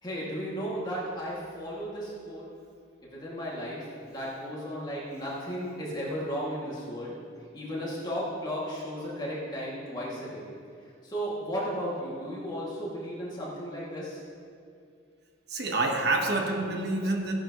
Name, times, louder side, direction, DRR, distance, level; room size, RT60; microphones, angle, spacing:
voice 1, 0.0-2.4 3.0-7.1 7.5-10.4 11.0-14.2, equal, 20° left, -6 dB, 2.1 m, -34 dB
voice 2, 15.5-17.3, right 2 dB, 55° right, 2 dB, 1.2 m, -27 dB
15.5 x 10.5 x 3.0 m, 2.4 s
head